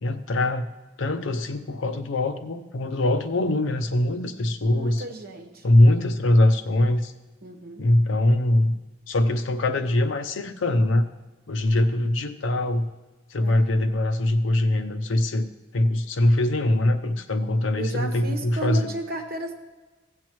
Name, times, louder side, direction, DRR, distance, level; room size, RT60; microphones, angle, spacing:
voice 1, 0.0-0.7 1.0-5.0 5.6-7.1 7.8-8.7 9.1-11.1 11.5-12.9 13.3-18.9, left 1 dB, 70° left, 9 dB, 0.6 m, -22 dB
voice 2, 4.6-5.6 7.4-7.9 13.4-13.6 17.8-19.5, right 2 dB, 55° right, 2 dB, 1.3 m, -34 dB
15.5 x 7.7 x 3.1 m, 1.2 s
head